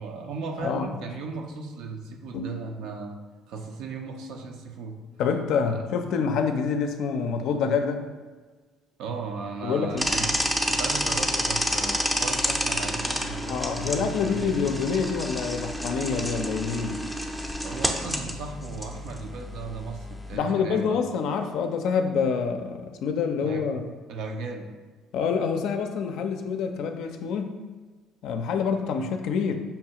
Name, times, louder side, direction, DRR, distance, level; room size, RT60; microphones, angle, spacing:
voice 1, 0.0-3.2 3.5-5.0 5.6-5.9 9.0-10.4 10.7-14.6 17.6-21.0 23.4-23.6 24.1-24.7, right 4 dB, 70° right, 3 dB, 0.5 m, -36 dB
voice 2, 0.6-0.9 2.3-2.5 5.2-8.1 9.6-10.1 13.5-17.1 20.3-23.9 25.1-27.5 28.2-29.6, left 6 dB, 70° left, 6 dB, 0.4 m, -27 dB
sound 1, 10.0-20.4, equal, 5° right, 0.5 m, -29 dB
5.4 x 2.3 x 2.8 m, 1.3 s
supercardioid pair, 80°, 0 cm